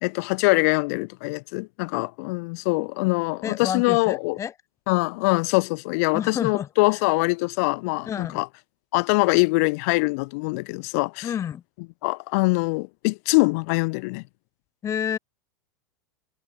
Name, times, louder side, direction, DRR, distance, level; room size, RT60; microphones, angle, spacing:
voice 1, 0.0-4.4 4.9-8.5 8.9-11.3 12.0-14.2, left 29 dB, 50° left, 1.5 m, -23 dB
voice 2, 3.4-4.5 6.1-6.7 8.1-8.4 11.2-11.6 14.8-15.2, left 9 dB, 25° left, 5.0 m, -29 dB
figure-of-eight pair, 90°, 11 cm